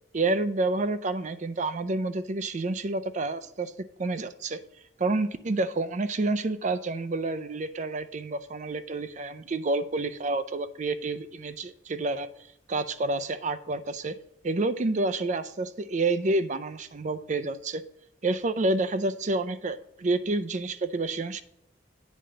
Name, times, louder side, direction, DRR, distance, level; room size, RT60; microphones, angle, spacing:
voice 1, 0.1-3.7 4.0-4.6 5.0-12.3 12.7-14.2 14.4-17.8 18.2-21.4, right 2 dB, 40° right, 12 dB, 0.5 m, -29 dB
9.3 x 3.8 x 6.7 m, 0.78 s
head